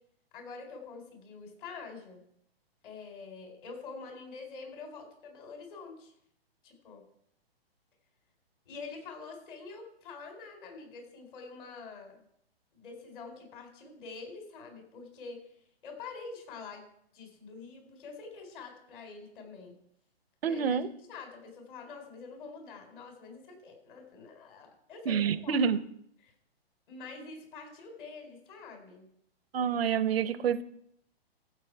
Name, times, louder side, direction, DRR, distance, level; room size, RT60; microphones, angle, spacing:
voice 1, 0.3-2.2 2.8-6.1 6.6-7.0 8.7-12.2 12.7-15.4 15.8-16.9 17.1-19.8 20.4-20.8 21.1-25.6 26.2-26.3 26.9-29.1, left 4 dB, 55° left, 4 dB, 4.2 m, -46 dB
voice 2, 20.4-20.9 25.1-25.8 29.5-30.6, right 7 dB, 70° right, 14 dB, 1.0 m, -28 dB
12.5 x 8.4 x 4.7 m, 0.72 s
hypercardioid pair, 140°, 31 cm